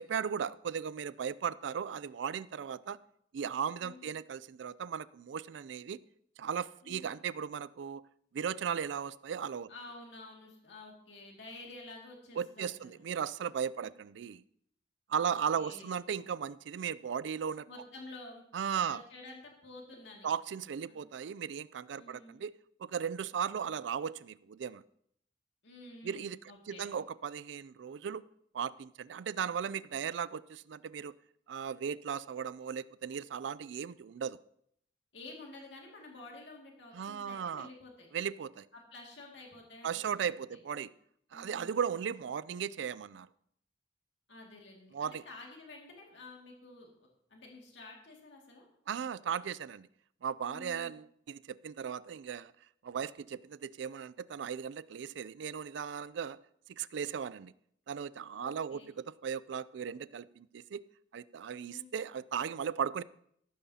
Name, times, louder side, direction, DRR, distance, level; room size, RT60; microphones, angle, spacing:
voice 1, 0.0-3.0 3.3-6.0 6.4-8.0 8.3-9.7 12.4-14.4 15.1-17.7 18.5-19.0 20.2-24.8 26.0-26.4 26.7-28.2 28.5-31.1 31.5-34.4 36.9-37.7 38.1-38.7 39.8-40.9 41.3-43.3 44.9-45.2 48.9-49.9 50.2-52.5 52.8-56.4 56.7-57.5 57.9-60.8 61.1-63.0, right 7 dB, 65° right, 18 dB, 0.4 m, -36 dB
voice 2, 3.7-4.1 6.8-7.0 9.7-12.9 13.8-13.9 15.1-15.9 17.7-18.4 18.8-20.3 20.9-21.0 21.9-22.4 25.6-26.9 35.1-38.1 38.7-40.4 41.3-41.8 44.3-48.7 50.5-51.0 58.3-58.9 61.6-61.9, left 2 dB, 65° left, -1 dB, 2.3 m, -51 dB
14.0 x 12.5 x 2.8 m, 0.69 s
head